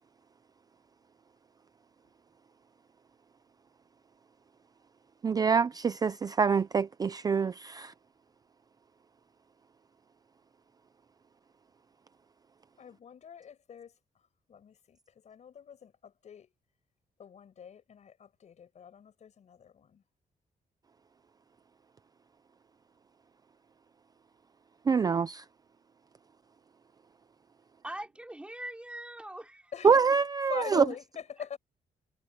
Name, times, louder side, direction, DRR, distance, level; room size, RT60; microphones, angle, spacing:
voice 1, 5.2-7.9 24.9-25.4 29.8-30.8, right 5 dB, 25° right, 0.4 m, -25 dB
voice 2, 12.8-13.9 14.5-16.5 17.2-20.0 29.7-29.9 30.5-31.6, left 7 dB, 45° left, 5.9 m, -44 dB
voice 3, 27.8-29.7, right 1 dB, 5° right, 4.0 m, -42 dB
wide cardioid pair, 180°, 16 cm